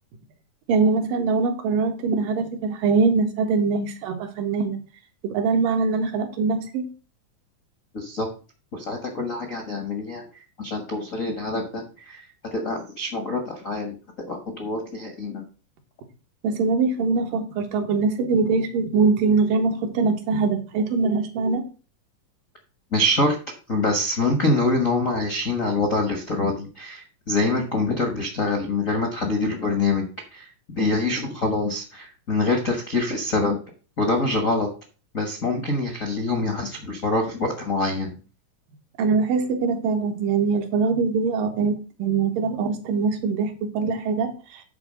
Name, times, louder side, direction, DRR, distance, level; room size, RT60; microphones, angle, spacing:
voice 1, 0.7-4.8 5.2-6.9 16.4-21.6 39.0-41.7 42.0-44.6, right 4 dB, 85° right, 4 dB, 3.0 m, -23 dB
voice 2, 7.9-8.3 8.7-10.2 10.6-12.2 12.5-13.9 14.3-15.4 22.9-23.3 23.7-30.0 30.3-33.6 34.0-34.7 35.1-38.2, left 2 dB, 60° left, 2 dB, 0.8 m, -25 dB
9.6 x 4.0 x 6.2 m, 0.35 s
omnidirectional pair, 3.8 m